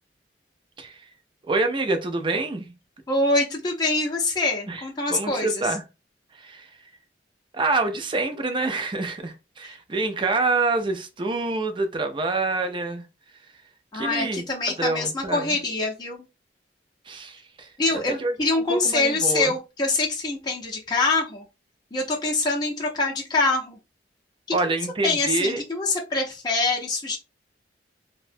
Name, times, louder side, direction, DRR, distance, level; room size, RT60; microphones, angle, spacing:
voice 1, 1.5-2.7 4.7-4.8 5.1-5.8 6.3-6.7 7.5-13.0 13.9-14.4 14.8-15.6 17.1-17.7 18.2-19.5 24.5-25.6, right 3 dB, 30° right, 0.5 m, -26 dB
voice 2, 3.1-5.6 9.6-9.7 13.9-16.2 17.8-21.4 21.9-23.8 25.0-27.2, left 3 dB, 25° left, 0.6 m, -25 dB
2.8 x 2.1 x 2.5 m
head